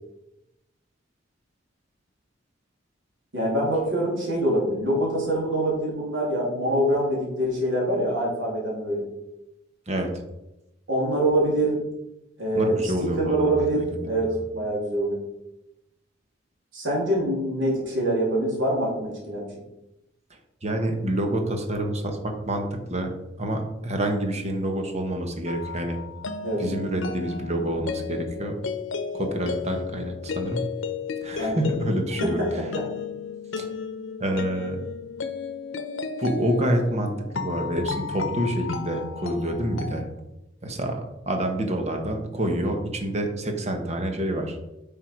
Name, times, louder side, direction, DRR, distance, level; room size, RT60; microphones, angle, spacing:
voice 1, 3.3-9.0 10.9-11.8 12.4-15.2 16.7-19.5 26.4-26.6 31.4-31.6 32.2-32.8, right 1 dB, 90° right, -4 dB, 3.2 m, -25 dB
voice 2, 12.5-14.2 20.6-23.1 23.4-26.0 26.6-28.6 29.1-30.6 31.2-32.4 33.6-33.7 34.2-34.8 36.2-40.1 40.6-44.6, right 1 dB, 35° right, 4 dB, 1.3 m, -27 dB
sound 1, 25.5-40.0, left 5 dB, 90° left, 0.7 m, -33 dB
9.0 x 5.7 x 4.7 m, 0.92 s
head